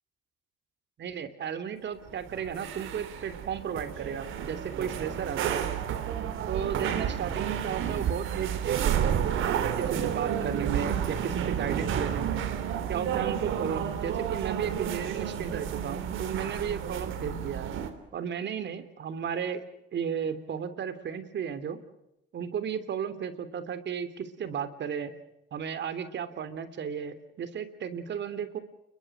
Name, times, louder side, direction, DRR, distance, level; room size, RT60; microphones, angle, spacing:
voice 1, 1.0-5.7 6.5-9.2 9.8-12.5 12.9-17.7 18.1-19.6 19.9-21.8 22.3-25.1 25.5-28.6, right 7 dB, 65° right, 12 dB, 3.2 m, -34 dB
sound 1, 2.1-17.9, right 9 dB, 85° right, 3.2 m, -31 dB
30.0 x 22.5 x 6.1 m, 0.84 s
cardioid pair, 90°, 20 cm